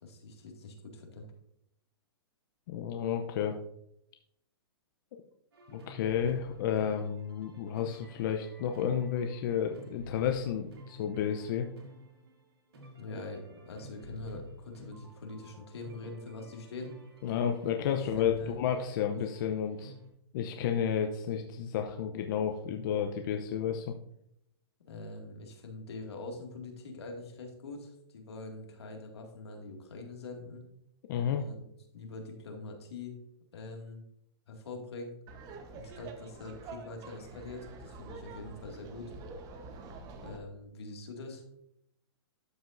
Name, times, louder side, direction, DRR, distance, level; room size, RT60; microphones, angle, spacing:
voice 1, 0.0-1.3 13.0-17.0 18.2-18.6 24.9-30.6 31.3-31.7 31.9-33.2 33.5-34.0 34.5-35.1 35.7-39.1 40.2-41.4, left 2 dB, 80° left, 2 dB, 2.1 m, -44 dB
voice 2, 2.7-3.6 5.7-11.7 17.2-19.9 20.3-23.9 31.1-31.4, left 8 dB, 50° left, 4 dB, 0.7 m, -31 dB
sound 1, 5.5-20.1, left 1 dB, 85° right, 2.5 m, -50 dB
Laughter, 35.3-40.4, right 3 dB, 30° right, 1.0 m, -47 dB
12.5 x 5.2 x 2.6 m, 0.76 s
hypercardioid pair, 135°, 13 cm